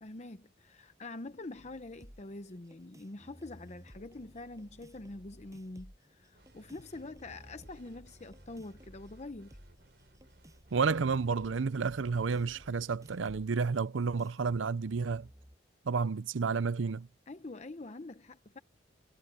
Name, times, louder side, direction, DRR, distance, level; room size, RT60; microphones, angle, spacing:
voice 1, 0.0-9.6 17.3-18.6, left 2 dB, 35° left, 0.8 m, -45 dB
sound 1, 1.5-15.6, equal, 15° right, 7.2 m, -57 dB
sound 2, 6.3-13.4, right 1 dB, 60° right, 6.1 m, -60 dB
voice 2, 10.7-15.3 15.9-17.1, right 5 dB, 90° right, 0.6 m, -31 dB
head